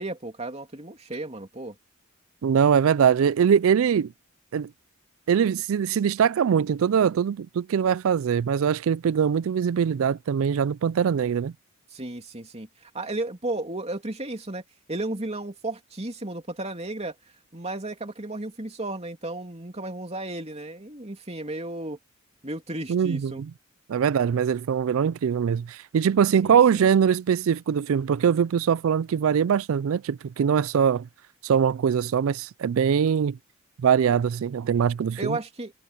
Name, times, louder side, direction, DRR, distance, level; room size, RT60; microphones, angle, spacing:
voice 1, 0.0-1.7 11.9-14.6 14.9-17.2 17.5-22.0 22.4-23.4 26.4-26.9 35.2-35.7, right 2 dB, 30° right, 2.9 m, -34 dB
voice 2, 2.4-4.1 4.5-4.7 5.3-11.5 22.9-23.5 23.9-31.1 31.4-33.4 33.8-35.4, right 7 dB, 65° right, 0.3 m, -22 dB
head